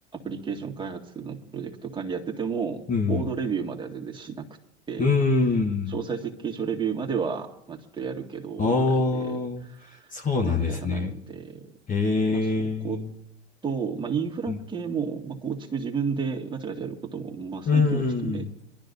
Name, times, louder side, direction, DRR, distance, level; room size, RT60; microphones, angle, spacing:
voice 1, 0.1-2.8 3.1-4.4 4.9-5.1 5.9-10.0 10.4-11.7 12.3-12.5 12.8-13.0 13.6-18.5, right 6 dB, 15° right, 3 dB, 2.1 m, -32 dB
voice 2, 2.9-3.2 5.0-5.9 8.6-9.6 10.1-11.1 11.9-13.1 14.5-14.6 17.7-18.5, left 4 dB, 25° left, 2 dB, 1.3 m, -24 dB
25.5 x 12.0 x 2.7 m, 0.77 s
figure-of-eight pair, 85°, 34 cm